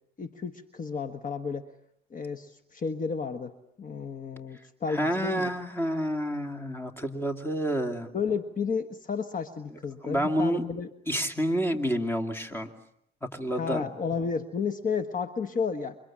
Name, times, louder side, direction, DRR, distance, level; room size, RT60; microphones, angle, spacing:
voice 1, 0.2-1.7 2.1-5.5 8.1-10.9 13.6-16.0, left 5 dB, 45° left, 8 dB, 1.4 m, -32 dB
voice 2, 4.9-8.1 10.0-10.6 11.1-12.7 13.3-13.9, equal, 10° left, 6 dB, 2.6 m, -29 dB
28.0 x 25.0 x 7.5 m, 0.75 s
cardioid pair, 90°, 20 cm